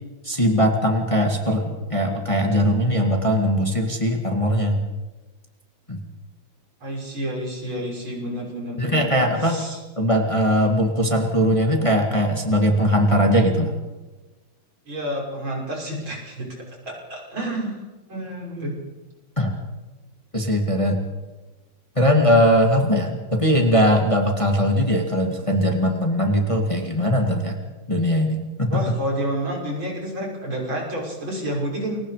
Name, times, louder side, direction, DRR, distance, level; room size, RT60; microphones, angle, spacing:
voice 1, 0.2-4.8 5.9-6.0 8.8-9.6 10.0-13.8 19.4-19.5 20.3-21.0 22.0-27.6 27.9-28.8, equal, 15° left, 2 dB, 2.2 m, -20 dB
voice 2, 6.8-9.2 9.4-9.8 14.9-16.5 16.8-17.8 18.1-18.8 28.7-32.1, equal, 70° right, -1 dB, 6.9 m, -29 dB
29.5 x 23.0 x 5.1 m, 1.2 s
omnidirectional pair, 2.2 m